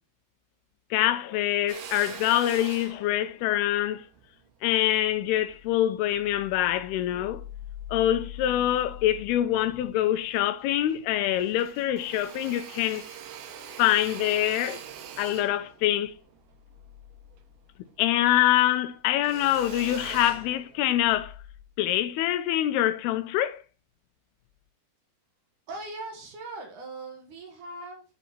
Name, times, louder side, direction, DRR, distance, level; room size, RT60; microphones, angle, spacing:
voice 1, 0.9-4.0 4.6-7.4 7.9-13.0 13.8-14.8 15.2-16.1 18.0-21.3 21.8-23.6, left 13 dB, 85° left, 2.6 m, -25 dB
Drill, 1.7-6.2 6.8-8.0 8.4-9.3 9.7-9.8 10.1-11.1 11.3-18.0 18.3-21.2, right 8 dB, 80° right, 3.0 m, -44 dB
voice 2, 25.7-28.0, right 2 dB, 60° right, 2.5 m, -40 dB
9.9 x 4.1 x 4.2 m
omnidirectional pair, 4.6 m